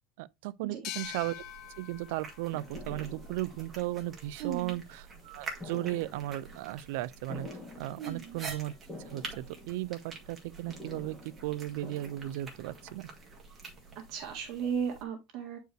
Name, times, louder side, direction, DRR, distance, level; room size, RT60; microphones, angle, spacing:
voice 1, 0.2-1.3 1.8-7.5 7.8-8.7 9.1-11.2 11.4-13.1, right 16 dB, 70° right, 0.5 m, -36 dB
sound 1, 0.8-4.2, left 14 dB, 45° left, 0.5 m, -46 dB
sound 2, 1.0-15.0, right 4 dB, 15° right, 1.9 m, -47 dB
sound 3, 1.6-14.9, left 1 dB, 10° left, 2.9 m, -50 dB
voice 2, 4.4-4.8 8.0-8.4 14.0-15.6, right 7 dB, 45° right, 1.8 m, -36 dB
9.1 x 4.5 x 3.3 m
cardioid pair, 170°, 0 cm